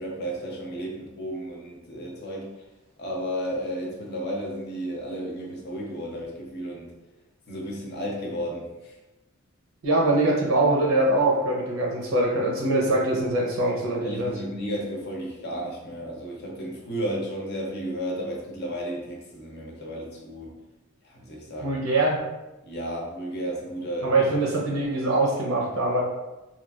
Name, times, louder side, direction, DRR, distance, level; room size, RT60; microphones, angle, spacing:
voice 1, 0.0-2.5 3.0-6.9 7.5-8.9 14.0-20.5 21.1-21.8 22.6-24.1, equal, 50° left, -1 dB, 0.6 m, -33 dB
voice 2, 9.8-14.3 21.6-22.2 24.0-26.0, right 2 dB, 70° right, -2 dB, 0.7 m, -23 dB
3.0 x 2.3 x 2.4 m, 1.0 s
head